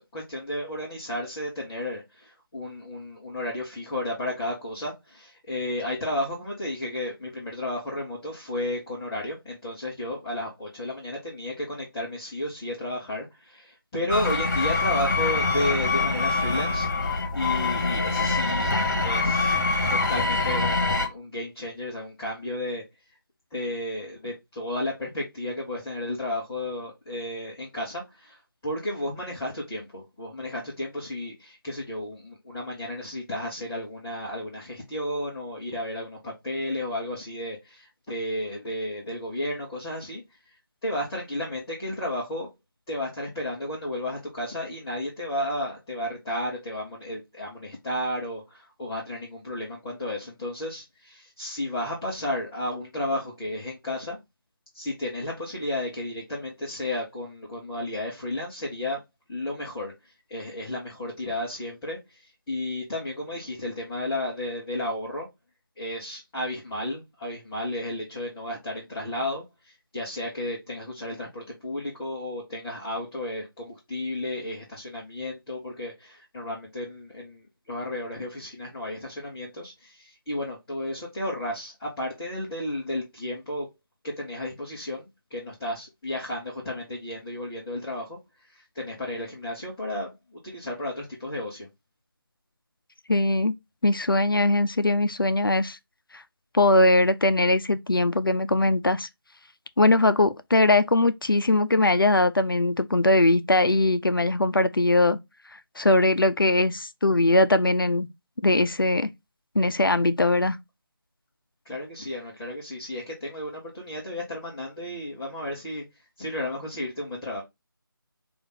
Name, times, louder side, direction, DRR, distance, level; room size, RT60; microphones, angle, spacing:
voice 1, 0.0-16.9 17.3-18.7 19.0-19.6 19.9-22.8 23.5-40.2 40.8-42.5 42.9-54.2 54.7-59.0 59.3-65.3 65.8-83.7 84.0-88.2 88.5-90.1 90.4-91.7 111.6-115.8 116.2-117.4, left 1 dB, 10° left, 0.8 m, -33 dB
sound 1, 14.1-21.1, left 3 dB, 50° left, 1.3 m, -24 dB
voice 2, 93.1-93.5 93.8-95.8 96.5-99.1 99.8-105.2 105.8-108.1 108.4-109.1 109.6-110.6, left 2 dB, 65° left, 0.5 m, -21 dB
5.0 x 2.5 x 4.0 m
figure-of-eight pair, 160°, 12 cm